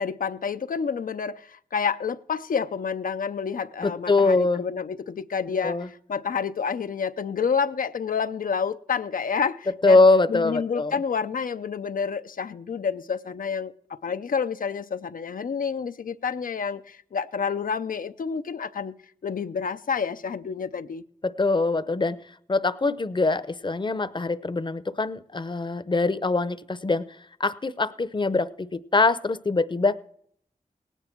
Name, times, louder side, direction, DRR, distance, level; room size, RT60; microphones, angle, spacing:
voice 1, 0.0-10.0 10.3-18.9 19.2-21.0, left 6 dB, 80° left, 0.6 m, -29 dB
voice 2, 3.8-4.6 5.6-5.9 9.8-11.0 21.2-22.2 22.5-27.1 27.4-30.0, left 3 dB, 35° left, 0.7 m, -23 dB
18.0 x 9.1 x 4.5 m
cardioid pair, 45°, 14 cm